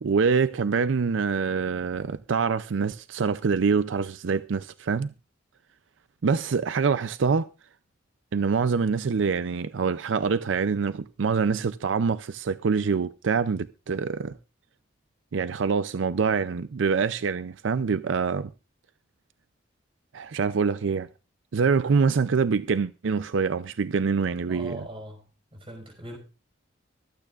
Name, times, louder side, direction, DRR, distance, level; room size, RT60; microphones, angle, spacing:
voice 1, 0.0-5.1 6.2-7.5 8.3-14.3 15.3-18.5 20.1-21.1 21.5-24.8, right 5 dB, 85° right, 0.5 m, -25 dB
voice 2, 24.5-25.3 25.5-26.2, equal, 30° right, 5.3 m, -40 dB
24.5 x 9.0 x 2.4 m
head